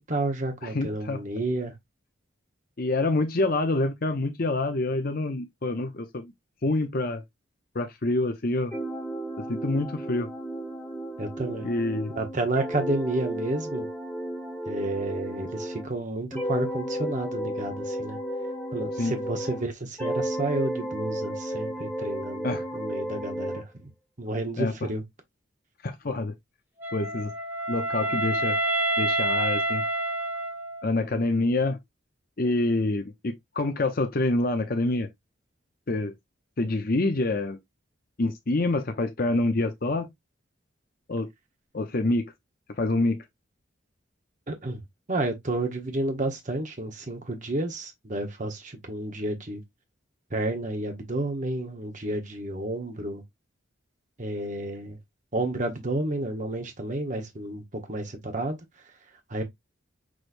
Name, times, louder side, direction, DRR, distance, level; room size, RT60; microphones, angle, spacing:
voice 1, 0.1-1.7 11.2-11.7 12.2-13.9 14.7-18.2 18.7-23.9 24.2-25.0 44.5-44.8 45.1-49.6 50.3-53.2 54.2-55.0 55.3-58.6 59.3-59.4, right 2 dB, 40° right, 1.1 m, -31 dB
voice 2, 0.6-1.2 2.8-6.3 6.6-7.2 7.7-8.7 9.5-10.3 11.6-12.1 19.0-19.1 22.4-22.6 24.6-24.9 25.8-26.3 26.9-27.3 27.7-28.6 29.0-29.8 30.8-31.8 32.4-35.1 35.9-36.1 36.6-37.6 38.2-40.1 41.1-41.3 41.7-42.3 42.8-43.2, left 2 dB, 50° left, 0.7 m, -26 dB
sound 1, 8.7-15.9 16.3-19.7 20.0-23.6, right 1 dB, 10° left, 1.7 m, -33 dB
Wind instrument woodwind instrument, 26.8-31.0, right 1 dB, 10° right, 1.5 m, -28 dB
6.2 x 3.2 x 2.6 m
head